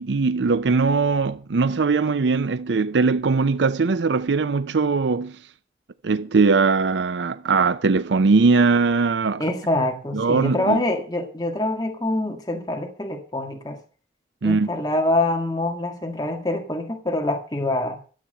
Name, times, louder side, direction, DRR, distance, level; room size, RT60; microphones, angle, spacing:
voice 1, 0.0-5.3 6.0-9.4 10.1-10.8 14.4-14.7, right 4 dB, 90° right, 0.5 m, -20 dB
voice 2, 9.4-13.8 14.4-18.0, left 1 dB, 20° left, 1.7 m, -25 dB
13.0 x 8.4 x 6.7 m
head